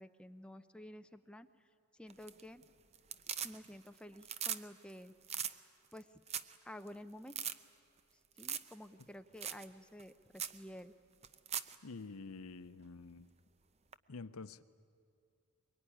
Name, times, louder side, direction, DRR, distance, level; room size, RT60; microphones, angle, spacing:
voice 1, 0.0-1.5 2.0-2.6 3.4-5.1 5.9-6.1 6.6-7.4 8.4-10.9, equal, 5° left, 0.6 m, -51 dB
sound 1, 2.1-2.6 2.9-3.9 4.2-4.6 4.9-5.0 5.2-5.5 6.0-6.1 6.3-6.6 6.9-7.0 7.3-7.5 8.4-8.7 9.0-9.1 9.4-9.6 10.0-10.1 10.4-10.6 11.2-11.7 13.9-14.0, right 8 dB, 30° right, 0.6 m, -40 dB
voice 2, 11.8-13.3 14.1-14.6, left 3 dB, 85° left, 0.7 m, -48 dB
23.0 x 22.5 x 10.0 m
head